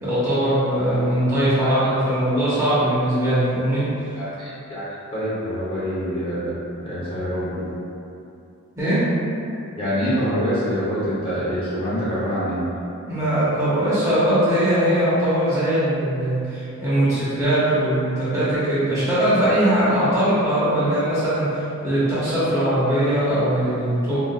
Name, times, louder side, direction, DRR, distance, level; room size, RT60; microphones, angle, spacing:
voice 1, 0.0-3.8 8.7-9.0 13.0-24.2, right 1 dB, 15° right, -12 dB, 0.7 m, -20 dB
voice 2, 4.2-6.5 6.8-7.6 9.8-12.6, equal, 25° left, -11 dB, 0.8 m, -25 dB
3.7 x 2.4 x 2.3 m, 2.7 s
head